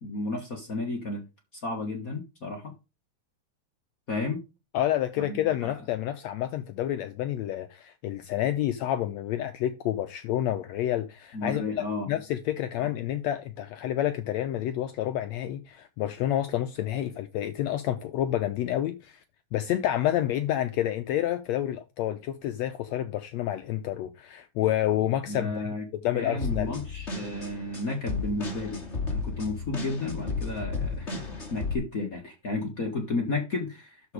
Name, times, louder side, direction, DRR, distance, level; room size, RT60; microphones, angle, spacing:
voice 1, 0.0-1.2 1.5-2.7 4.1-4.4 5.2-5.7 11.3-12.1 12.8-12.9 25.3-25.9 26.1-34.1, left 2 dB, 45° left, 1.1 m, -33 dB
voice 2, 4.7-11.6 12.1-19.2 19.5-25.7 26.0-26.8, left 12 dB, 80° left, 1.6 m, -29 dB
sound 1, 26.4-31.8, left 3 dB, 25° left, 1.9 m, -33 dB
12.0 x 4.5 x 4.8 m
omnidirectional pair, 3.7 m